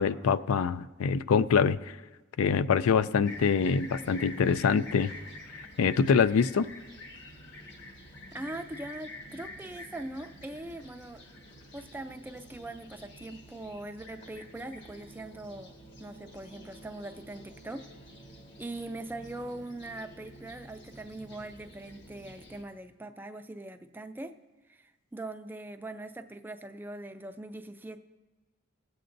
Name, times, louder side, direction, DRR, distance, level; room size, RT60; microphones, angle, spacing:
voice 1, 0.0-1.8 2.4-5.1 5.8-6.7, left 6 dB, 85° left, 14 dB, 0.4 m, -24 dB
Fixed-wing aircraft airplane, 3.2-22.6, left 1 dB, 55° left, 1.5 m, -48 dB
voice 2, 8.3-11.2 11.7-17.8 18.6-24.3 24.7-28.0, right 2 dB, 10° right, 8 dB, 0.3 m, -41 dB
20.5 x 7.8 x 2.6 m, 1.2 s
head